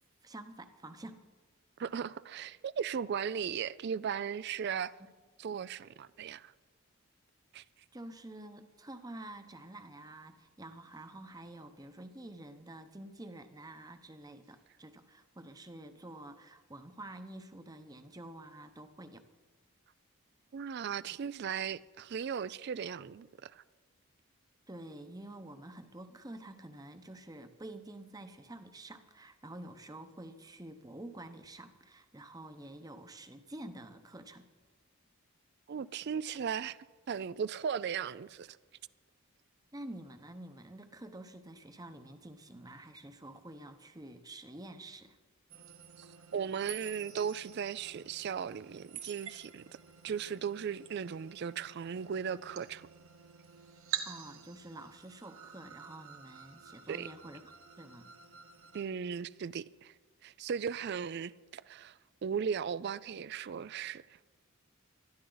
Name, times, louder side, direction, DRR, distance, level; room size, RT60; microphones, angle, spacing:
voice 1, 0.2-1.2 7.9-19.2 24.7-34.5 39.7-45.2 54.1-58.1, right 1 dB, 15° right, 0.8 m, -48 dB
voice 2, 1.8-5.0 5.4-6.5 7.5-7.6 20.5-23.6 35.7-36.8 37.1-38.6 46.0-46.1 46.3-49.6 50.0-52.9 56.9-57.1 58.7-59.9 60.2-64.0, right 7 dB, 50° right, 0.3 m, -37 dB
sound 1, 45.5-58.8, right 8 dB, 70° right, 1.5 m, -48 dB
20.0 x 13.0 x 3.9 m
head